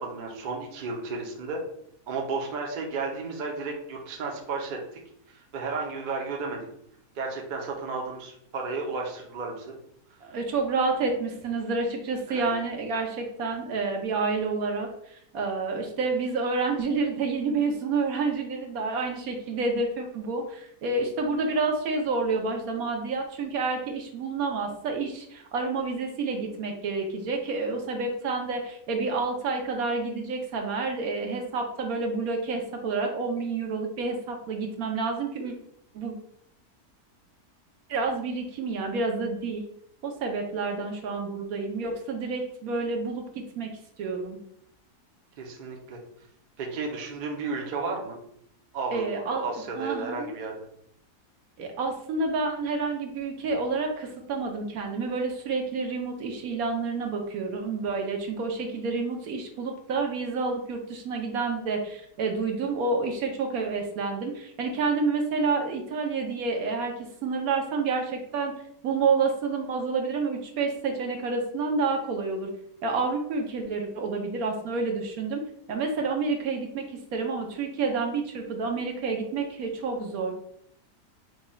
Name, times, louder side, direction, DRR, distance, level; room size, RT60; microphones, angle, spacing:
voice 1, 0.0-1.6 2.1-4.8 5.3-6.7 7.1-9.7 12.3-12.5 45.4-46.0 46.6-48.2 48.7-50.6, right 4 dB, 40° right, 0 dB, 0.7 m, -33 dB
voice 2, 10.2-35.5 35.9-36.2 37.9-39.6 40.0-43.2 43.6-43.7 44.0-44.4 48.9-49.5 49.8-50.3 51.6-68.5 68.8-72.5 72.8-75.4 75.7-76.8 77.1-80.3, right 4 dB, 70° right, 3 dB, 1.2 m, -29 dB
4.9 x 2.3 x 4.1 m, 0.71 s
omnidirectional pair, 1.6 m